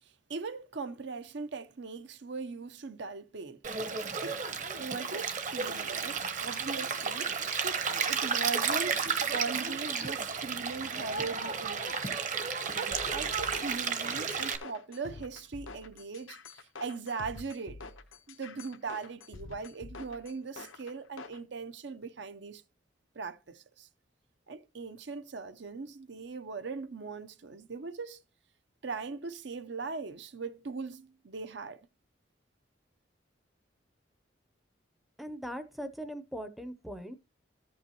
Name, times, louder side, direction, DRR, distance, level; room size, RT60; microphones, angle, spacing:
voice 1, 0.3-3.6 4.2-4.4 4.8-7.8 8.1-9.0 9.3-12.2 12.8-17.8 18.3-22.6 23.1-23.9 24.5-28.2 28.8-31.8, right 4 dB, 65° right, 0.6 m, -40 dB
Stream, 3.6-14.6, right 6 dB, 40° right, 0.9 m, -32 dB
sound 1, 12.9-21.4, left 3 dB, 85° left, 0.9 m, -47 dB
voice 2, 35.2-37.2, equal, ahead, 0.6 m, -40 dB
14.0 x 5.6 x 2.9 m
head